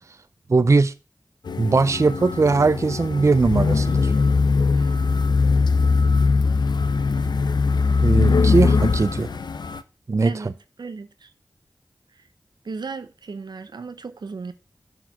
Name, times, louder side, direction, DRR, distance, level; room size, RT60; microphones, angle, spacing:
voice 1, 0.5-0.9 1.6-4.1 8.0-9.3 10.1-10.3, right 3 dB, 45° right, 0.4 m, -19 dB
sound 1, 1.5-9.8, left 4 dB, 85° left, 0.6 m, -20 dB
voice 2, 10.2-11.3 12.2-12.3 12.6-14.5, right 4 dB, 85° right, 0.8 m, -36 dB
7.6 x 4.9 x 5.8 m
wide cardioid pair, 60°, 7 cm